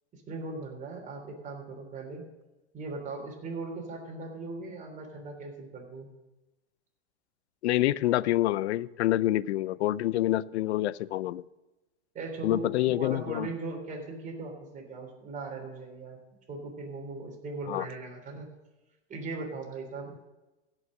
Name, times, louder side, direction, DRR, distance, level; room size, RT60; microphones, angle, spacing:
voice 1, 0.1-2.2 2.7-6.1 12.1-16.2 16.5-18.5 19.1-20.1, right 3 dB, 25° right, 3.5 m, -39 dB
voice 2, 7.6-11.4 12.4-13.5 17.7-17.9, left 15 dB, 75° left, 0.5 m, -27 dB
16.0 x 6.2 x 6.5 m
hypercardioid pair, 130°, 34 cm